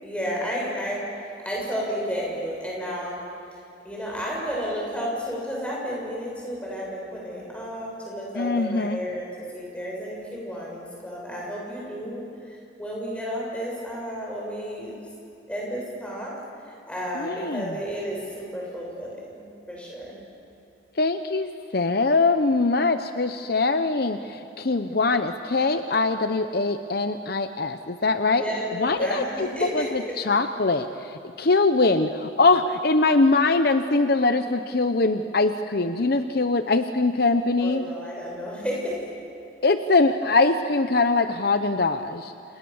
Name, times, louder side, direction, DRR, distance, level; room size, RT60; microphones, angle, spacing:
voice 1, 0.0-3.2 3.8-9.3 9.5-14.9 15.5-16.3 16.6-19.4 19.7-20.2 28.4-29.9 37.6-39.0, equal, 5° left, -4 dB, 7.0 m, -32 dB
voice 2, 8.4-9.0 17.1-17.7 21.0-28.4 28.8-29.5 29.7-29.8 30.2-37.8 39.6-42.3, left 3 dB, 50° left, 9 dB, 0.8 m, -22 dB
29.0 x 28.0 x 7.2 m, 2.8 s
head